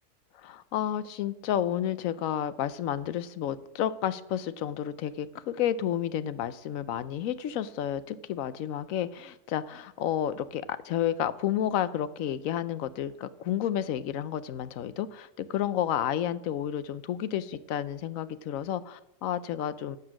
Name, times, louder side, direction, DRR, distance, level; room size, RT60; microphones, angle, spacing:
voice 1, 0.4-20.0, left 10 dB, 75° left, 15 dB, 1.0 m, -31 dB
12.0 x 7.4 x 6.2 m, 0.86 s
omnidirectional pair, 1.4 m